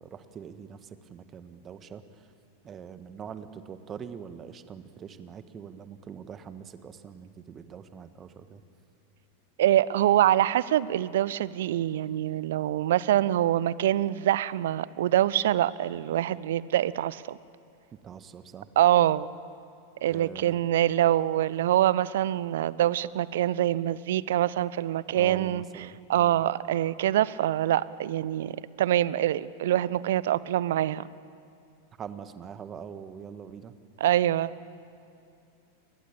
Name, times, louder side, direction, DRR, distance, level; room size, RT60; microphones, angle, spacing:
voice 1, 0.1-0.8 1.1-2.0 2.6-8.6 18.0-18.6 20.1-20.6 25.1-26.3 32.0-33.7, right 7 dB, 25° right, 11 dB, 1.5 m, -43 dB
voice 2, 9.6-17.4 18.8-19.3 20.0-31.1 34.0-34.5, right 12 dB, 55° right, 19 dB, 0.7 m, -25 dB
30.0 x 22.5 x 8.8 m, 2.6 s
figure-of-eight pair, 90°, 0 cm